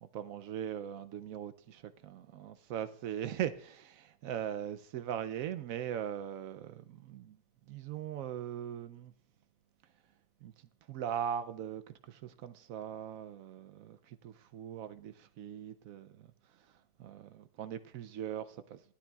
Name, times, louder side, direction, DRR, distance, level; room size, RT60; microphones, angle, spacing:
voice 1, 0.1-7.4 7.7-9.1 10.4-18.8, right 9 dB, 70° right, 0.8 m, -40 dB
16.5 x 11.5 x 2.3 m
omnidirectional pair, 1.9 m